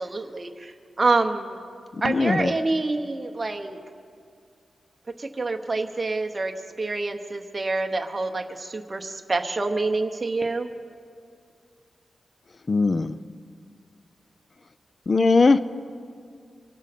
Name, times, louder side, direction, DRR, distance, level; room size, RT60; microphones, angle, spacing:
voice 1, 0.0-1.6 2.0-3.8 5.2-10.7, right 3 dB, 25° right, 4 dB, 0.8 m, -27 dB
voice 2, 1.9-2.5 12.7-13.2 15.1-15.6, left 3 dB, 35° left, 13 dB, 0.4 m, -20 dB
24.0 x 12.0 x 4.2 m, 2.3 s
wide cardioid pair, 155°, 0 cm